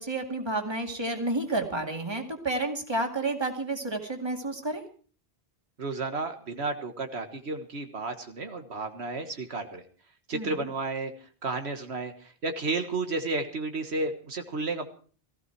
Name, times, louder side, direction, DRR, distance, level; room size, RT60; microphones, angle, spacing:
voice 1, 0.0-4.8 10.3-10.7, right 2 dB, 25° right, 3 dB, 2.3 m, -30 dB
voice 2, 5.8-9.8 10.3-11.1 11.4-14.9, right 3 dB, 80° right, 6 dB, 1.7 m, -32 dB
18.0 x 15.5 x 4.6 m, 0.41 s
omnidirectional pair, 1.1 m